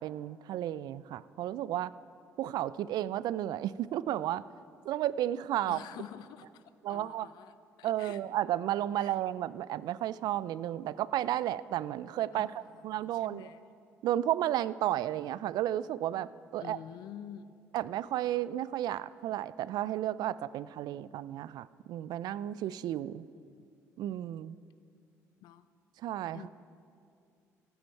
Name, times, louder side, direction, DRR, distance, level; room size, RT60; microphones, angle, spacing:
voice 1, 0.0-1.9 2.4-4.4 4.8-5.8 6.8-7.3 7.8-12.5 12.8-13.5 14.0-16.8 17.7-23.3 24.0-24.6 26.0-26.4, right 12 dB, 70° right, 18 dB, 0.3 m, -33 dB
voice 2, 5.6-6.6 6.9-8.2 9.0-9.2 12.3-13.7 16.6-17.6 23.5-23.7 25.4-25.7 26.3-26.5, left 10 dB, 75° left, 14 dB, 0.5 m, -48 dB
14.5 x 13.0 x 4.5 m, 2.5 s
supercardioid pair, 60°, 7 cm